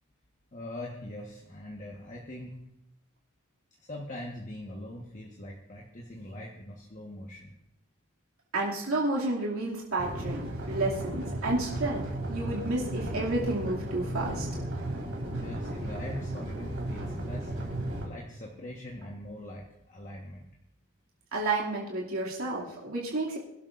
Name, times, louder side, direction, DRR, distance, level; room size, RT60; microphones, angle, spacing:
voice 1, 0.5-2.6 3.8-7.6 15.3-17.8 18.0-20.5, left 1 dB, 35° left, -2 dB, 1.3 m, -42 dB
voice 2, 8.5-10.4 10.7-14.5 21.3-23.4, right 2 dB, 85° right, -5 dB, 2.5 m, -31 dB
sound 1, 10.0-18.1, right 1 dB, 70° right, 3.3 m, -35 dB
22.0 x 12.0 x 2.6 m, 0.83 s
head